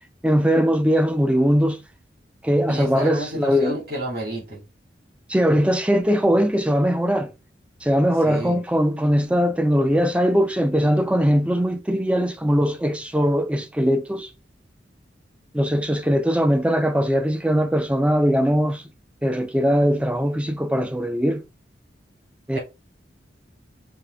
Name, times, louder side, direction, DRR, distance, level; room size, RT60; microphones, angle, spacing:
voice 1, 0.2-1.8 2.4-3.8 5.3-7.3 7.8-14.3 15.5-18.9 19.2-21.5 22.5-22.6, equal, 5° right, 0.4 m, -20 dB
voice 2, 2.7-4.6 8.2-8.6 22.5-22.6, right 1 dB, 55° right, 2.4 m, -30 dB
5.3 x 2.4 x 3.2 m
head